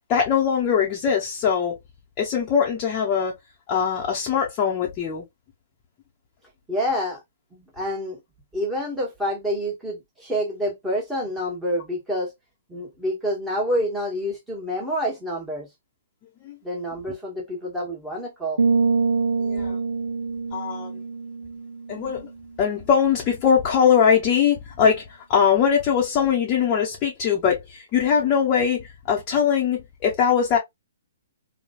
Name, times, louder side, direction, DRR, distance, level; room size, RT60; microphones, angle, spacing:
voice 1, 0.1-1.8 2.2-3.3 3.7-5.2 16.4-16.6 19.4-19.8 20.5-20.9 21.9-22.3 22.6-30.6, left 7 dB, 30° left, 0.8 m, -21 dB
voice 2, 6.7-7.2 7.5-8.2 8.5-12.3 12.7-15.7 16.6-18.6, equal, 5° right, 1.4 m, -27 dB
sound 1, 18.6-22.3, right 4 dB, 75° right, 0.4 m, -25 dB
3.1 x 2.3 x 2.3 m
hypercardioid pair, 130°, 0 cm